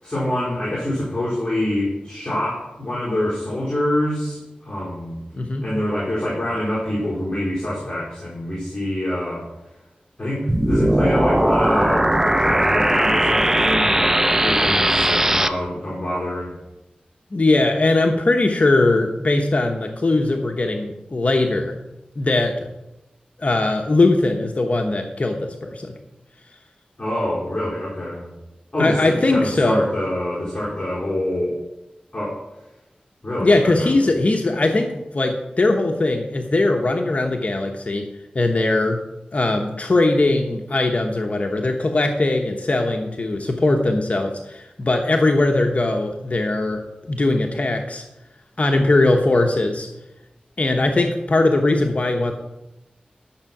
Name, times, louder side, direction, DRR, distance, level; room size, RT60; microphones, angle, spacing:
voice 1, 0.0-5.2 5.6-9.5 10.2-16.5 27.0-28.3 28.7-31.5 32.1-32.4 33.2-33.9, left 1 dB, 30° left, -7 dB, 4.5 m, -25 dB
sound 1, 10.5-15.5, right 1 dB, 15° right, 0.7 m, -18 dB
voice 2, 17.3-21.8 22.2-22.7 23.4-26.0 28.8-29.8 33.4-38.1 38.3-39.0 39.3-48.0 48.6-49.9 50.6-52.3, left 2 dB, 50° left, 3 dB, 1.1 m, -20 dB
12.0 x 7.1 x 6.0 m, 0.97 s
wide cardioid pair, 75°, 3 cm